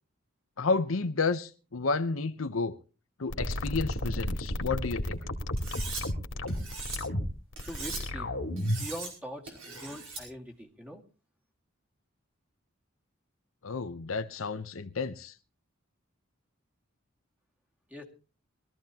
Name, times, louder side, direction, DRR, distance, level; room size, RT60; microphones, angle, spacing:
voice 1, 0.6-2.8 3.2-5.2 13.6-15.3, left 4 dB, 90° left, 0.8 m, -31 dB
sound 1, 3.3-8.9, left 1 dB, 70° left, 2.2 m, -32 dB
Cutlery silverware, 5.6-6.0 6.5-7.0 7.6-8.0 8.6-9.1 9.5-10.2, right 4 dB, 70° right, 5.3 m, -40 dB
voice 2, 7.7-8.3 8.7-11.0 17.9-18.0, equal, 5° right, 2.1 m, -42 dB
22.5 x 14.0 x 2.9 m
head